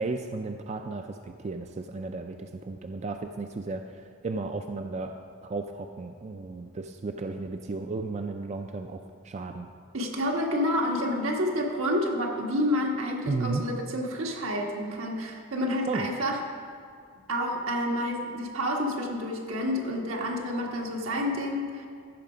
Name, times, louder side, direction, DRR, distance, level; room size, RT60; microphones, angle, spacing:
voice 1, 0.0-5.1 5.4-9.7 13.2-13.6 15.9-16.1, right 3 dB, 35° right, 5 dB, 0.4 m, -34 dB
voice 2, 9.9-16.4 17.3-21.9, equal, 80° right, 0 dB, 1.5 m, -29 dB
14.5 x 6.0 x 5.0 m, 2.2 s
head